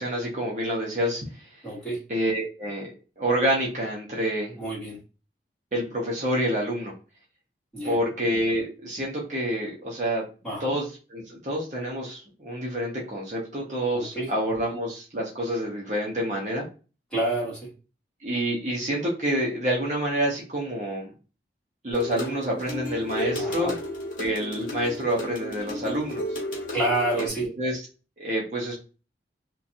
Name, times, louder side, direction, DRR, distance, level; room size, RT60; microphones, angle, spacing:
voice 1, 0.0-1.5 2.1-2.9 3.2-4.5 5.7-6.9 7.8-10.2 10.6-16.6 18.2-21.1 21.8-23.7 24.2-26.4 27.2-27.3 27.6-27.8 28.2-28.8, right 1 dB, 40° right, -2 dB, 0.7 m, -28 dB
voice 2, 1.6-2.0 4.6-5.0 7.7-8.0 10.4-10.7 13.9-14.3 17.1-17.7 23.3-23.7 26.7-27.5, right 1 dB, 5° left, -7 dB, 1.3 m, -28 dB
sound 1, 21.9-27.3, equal, 50° left, 0.8 m, -33 dB
2.6 x 2.2 x 2.6 m, 0.33 s
head